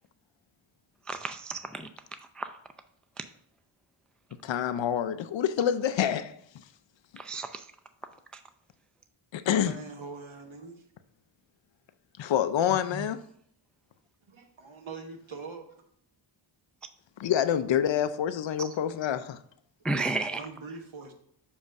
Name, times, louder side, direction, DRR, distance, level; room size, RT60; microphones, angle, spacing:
voice 1, 1.1-1.9 2.4-2.5 7.2-7.6 12.9-13.1 19.8-20.4, right 3 dB, ahead, 0.3 m, -32 dB
voice 2, 4.4-6.3 9.3-9.7 12.2-13.2 17.2-19.4, left 9 dB, 65° left, 0.5 m, -27 dB
voice 3, 9.6-10.8 14.3-15.8 20.4-21.1, right 4 dB, 65° right, 1.2 m, -43 dB
7.1 x 2.5 x 5.3 m
cardioid pair, 55°, 50 cm